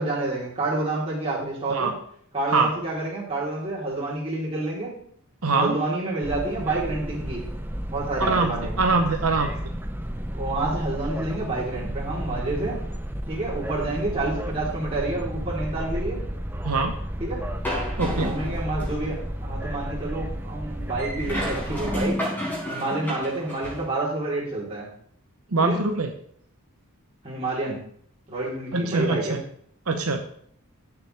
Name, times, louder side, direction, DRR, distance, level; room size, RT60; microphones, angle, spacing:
voice 1, 0.0-1.9 2.3-4.9 5.5-7.4 7.9-8.7 10.3-12.8 13.3-16.2 17.2-17.4 18.0-22.2 22.7-24.9 25.6-25.8 27.2-27.8 28.3-29.4, right 2 dB, 25° right, -5 dB, 3.9 m, -28 dB
voice 2, 5.4-5.7 8.2-9.5 16.6-17.0 18.0-18.3 25.5-26.1 28.7-29.4 29.9-30.2, right 3 dB, 75° right, 5 dB, 0.9 m, -23 dB
sound 1, 6.2-22.1, equal, 10° right, 0.7 m, -32 dB
sound 2, 17.6-19.1 21.0-23.9, equal, 10° left, 4.8 m, -31 dB
15.5 x 7.1 x 3.5 m, 0.64 s
head